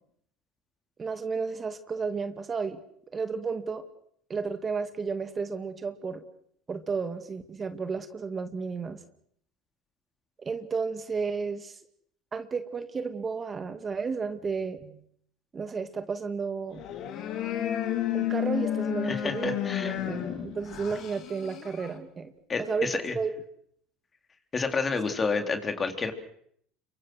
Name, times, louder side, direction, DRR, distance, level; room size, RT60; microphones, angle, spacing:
voice 1, 1.0-2.8 3.1-3.8 4.3-6.2 6.7-9.0 10.4-11.8 12.3-15.0 15.5-16.8 18.1-22.3 22.6-23.4, right 5 dB, 30° right, 8 dB, 2.3 m, -32 dB
sound 1, 16.7-22.0, left 11 dB, 60° left, 4.1 m, -31 dB
voice 2, 19.1-20.0 22.5-23.1 24.5-26.1, left 4 dB, 30° left, 6 dB, 3.9 m, -29 dB
29.5 x 24.0 x 6.4 m, 0.68 s
hypercardioid pair, 85°, 0 cm